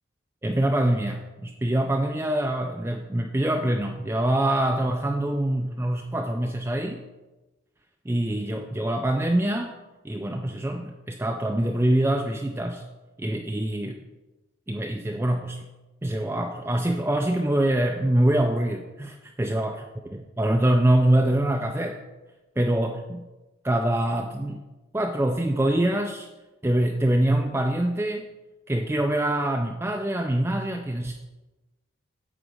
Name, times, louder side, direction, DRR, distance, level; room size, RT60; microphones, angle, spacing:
voice 1, 0.4-7.0 8.1-9.7 10.0-12.8 13.2-14.0 14.7-15.6 16.0-19.8 20.1-22.0 22.6-23.3 23.6-24.6 24.9-26.3 26.6-28.2 28.7-31.1, right 1 dB, 10° right, 3 dB, 0.3 m, -24 dB
8.8 x 4.1 x 6.5 m, 1.1 s
head